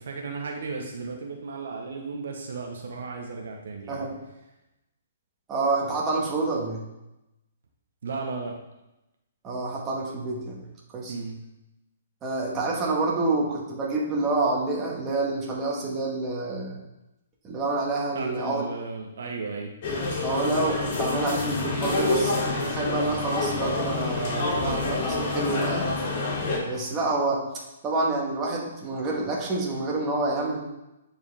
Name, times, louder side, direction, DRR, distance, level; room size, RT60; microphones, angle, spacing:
voice 1, 0.0-4.1 8.0-8.5 11.1-11.4 18.1-19.7, right 4 dB, 70° right, 2 dB, 1.1 m, -35 dB
voice 2, 5.5-6.8 9.4-10.6 10.9-11.1 12.2-16.8 17.4-18.6 20.2-25.9 26.6-27.4 27.8-30.6, right 2 dB, 20° right, -3 dB, 1.7 m, -28 dB
sound 1, 19.8-26.6, left 2 dB, 45° left, 2.7 m, -27 dB
9.4 x 4.7 x 3.6 m, 0.94 s
hypercardioid pair, 145°, 0 cm